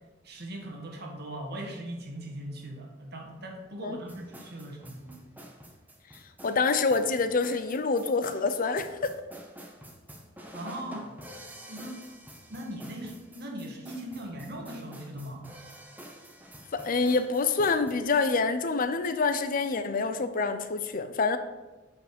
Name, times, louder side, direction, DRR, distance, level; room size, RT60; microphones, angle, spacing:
voice 1, 0.2-5.2 10.5-11.1 11.7-12.0 12.5-15.5, right 1 dB, 60° right, 2 dB, 1.5 m, -39 dB
sound 1, 4.1-17.9, right 1 dB, 10° right, 0.9 m, -48 dB
voice 2, 6.4-9.1 16.7-21.4, left 4 dB, 45° left, 10 dB, 0.5 m, -26 dB
7.4 x 5.1 x 5.1 m, 1.2 s
head